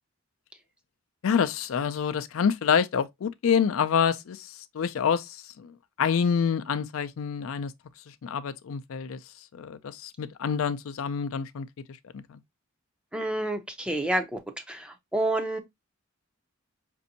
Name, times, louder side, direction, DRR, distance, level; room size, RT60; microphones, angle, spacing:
voice 1, 1.2-5.7 6.0-7.7 8.2-9.2 9.6-11.7 12.1-12.4, left 7 dB, 70° left, 0.4 m, -27 dB
voice 2, 13.1-14.4 14.7-15.6, right 1 dB, 5° right, 0.4 m, -28 dB
5.1 x 2.6 x 2.6 m
head